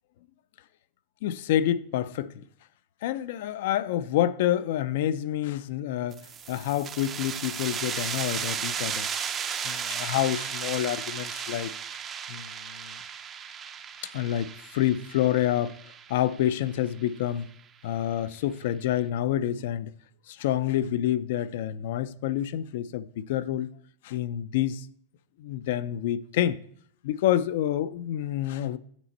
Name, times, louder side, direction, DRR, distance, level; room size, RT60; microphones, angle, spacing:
voice 1, 1.2-2.4 3.0-9.1 9.6-11.7 12.3-13.0 14.1-15.8 16.1-17.5 17.8-19.9 20.3-23.7 24.0-24.9 25.4-26.6 27.0-28.8, left 12 dB, 60° left, 0.3 m, -28 dB
sound 1, 6.1-17.4, right 7 dB, 20° right, 0.4 m, -35 dB
8.2 x 5.1 x 4.1 m
supercardioid pair, 155°, 0 cm